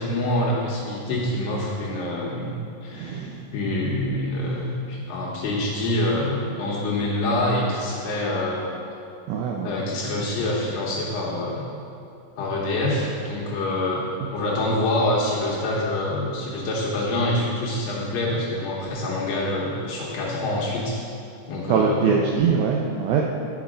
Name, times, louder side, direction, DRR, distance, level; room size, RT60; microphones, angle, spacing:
voice 1, 0.0-3.2 3.5-8.7 9.6-11.7 12.4-14.0 14.3-21.0 21.5-22.2, left 1 dB, 70° left, -4 dB, 2.3 m, -26 dB
voice 2, 2.9-3.4 9.3-9.7 21.7-23.2, right 6 dB, 85° right, -1 dB, 2.1 m, -22 dB
10.5 x 5.0 x 5.0 m, 2.5 s
omnidirectional pair, 4.8 m